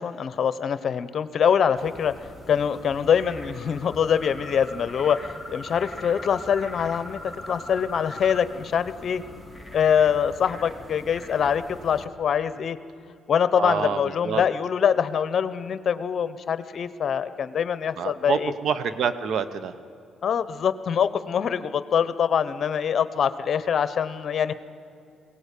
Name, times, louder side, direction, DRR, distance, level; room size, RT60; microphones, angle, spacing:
voice 1, 0.0-2.1 2.5-7.2 7.5-9.2 9.7-12.8 13.3-18.5 20.2-24.5, left 7 dB, 55° left, 14 dB, 1.0 m, -24 dB
sound 1, 1.8-12.1, left 1 dB, 5° right, 3.1 m, -41 dB
voice 2, 13.6-14.4 18.0-19.8, right 6 dB, 70° right, 13 dB, 1.1 m, -27 dB
22.0 x 18.0 x 8.5 m, 2.6 s
cardioid pair, 90°, 0 cm